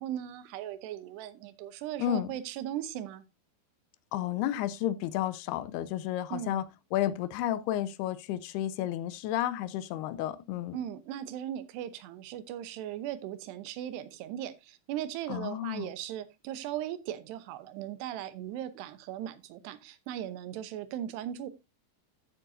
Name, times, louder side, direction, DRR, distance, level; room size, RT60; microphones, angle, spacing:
voice 1, 0.0-3.2 6.3-6.6 10.7-21.5, right 11 dB, 90° right, 3.0 m, -38 dB
voice 2, 4.1-6.6 6.9-10.8 15.3-15.9, left 12 dB, 80° left, 2.6 m, -32 dB
14.0 x 7.6 x 2.6 m
omnidirectional pair, 4.7 m